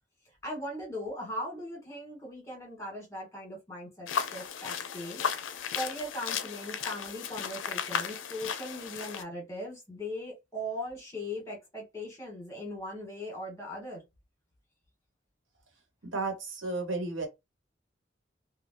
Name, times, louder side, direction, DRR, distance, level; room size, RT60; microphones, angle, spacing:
voice 1, 0.4-5.2 5.7-14.0, left 1 dB, 15° left, 1.3 m, -39 dB
sound 1, 4.1-9.2, left 7 dB, 90° left, 0.4 m, -35 dB
voice 2, 16.1-17.3, right 3 dB, 90° right, 1.2 m, -32 dB
3.3 x 2.2 x 2.7 m
head